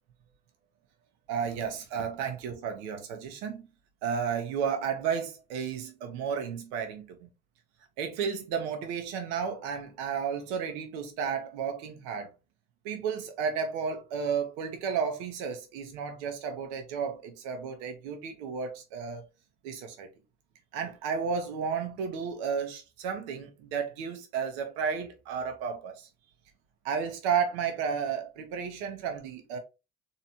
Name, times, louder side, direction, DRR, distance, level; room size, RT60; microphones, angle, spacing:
voice 1, 1.3-3.7 4.0-7.3 8.0-12.3 12.8-19.2 19.6-20.1 20.7-26.1 26.8-29.6, right 6 dB, 80° right, 0.8 m, -32 dB
3.2 x 2.8 x 2.7 m
hypercardioid pair, 65°, 34 cm